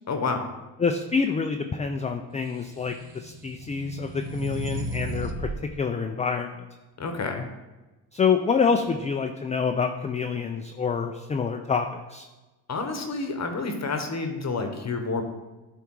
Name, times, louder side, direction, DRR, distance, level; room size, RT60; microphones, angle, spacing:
voice 1, 0.1-0.5 7.0-7.4 12.7-15.2, left 4 dB, 35° left, 5 dB, 1.0 m, -29 dB
voice 2, 0.8-5.5 5.8-6.7 8.1-12.2, left 5 dB, 15° left, 5 dB, 0.3 m, -27 dB
sound 1, 2.7-5.6, right 2 dB, 85° right, 0.9 m, -34 dB
9.5 x 3.5 x 4.6 m, 1.1 s
supercardioid pair, 80°, 48 cm